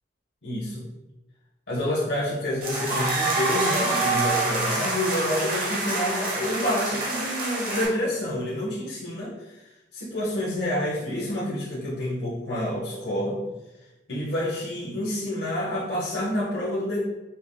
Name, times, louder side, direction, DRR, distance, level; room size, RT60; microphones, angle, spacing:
voice 1, 0.4-0.8 1.7-9.6 9.9-13.4 14.1-17.0, left 1 dB, 60° left, -6 dB, 1.0 m, -28 dB
sound 1, 2.6-7.9, right 2 dB, 45° right, 1.1 m, -26 dB
5.6 x 3.5 x 2.2 m, 1.0 s
head